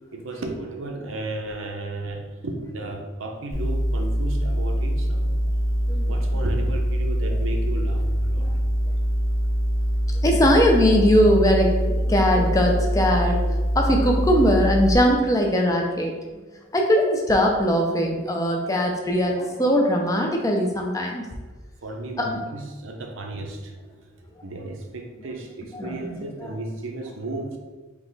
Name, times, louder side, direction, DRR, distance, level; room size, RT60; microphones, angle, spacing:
voice 1, 0.1-5.3 6.0-8.4 21.8-27.6, right 2 dB, 80° right, 2 dB, 0.7 m, -34 dB
sound 1, 3.5-14.9, equal, 35° left, 1.1 m, -23 dB
voice 2, 10.2-16.1 16.7-21.2 22.2-22.4 25.7-26.1, equal, 15° left, 1 dB, 0.5 m, -20 dB
3.9 x 2.9 x 4.0 m, 1.3 s
head